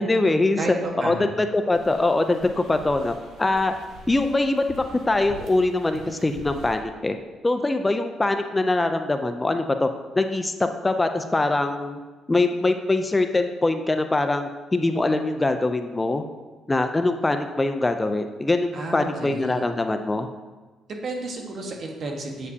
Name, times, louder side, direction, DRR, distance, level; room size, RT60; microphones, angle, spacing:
voice 1, 0.0-0.6 1.0-3.7 4.1-7.2 7.4-9.9 10.2-12.0 12.3-16.2 16.7-20.3, left 2 dB, 20° left, 7 dB, 0.5 m, -23 dB
voice 2, 0.6-1.2 18.7-19.6 21.0-22.5, right 2 dB, 55° right, 2 dB, 1.3 m, -32 dB
sound 1, 1.7-6.8, right 1 dB, 80° right, 1.1 m, -45 dB
8.0 x 7.3 x 2.8 m, 1.2 s
cardioid pair, 90°, 0 cm